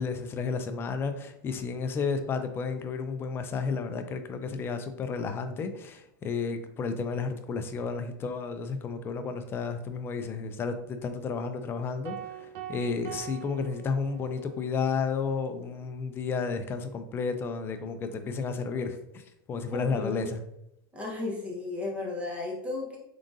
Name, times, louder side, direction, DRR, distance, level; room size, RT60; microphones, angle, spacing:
voice 1, 0.0-19.2 19.5-20.4, left 5 dB, 20° left, 7 dB, 0.3 m, -32 dB
sound 1, 12.0-14.5, right 11 dB, 55° right, 0.5 m, -42 dB
voice 2, 19.7-20.4 20.9-23.0, left 3 dB, 10° right, -2 dB, 0.8 m, -34 dB
3.8 x 3.7 x 2.5 m, 0.79 s
supercardioid pair, 150°, 13 cm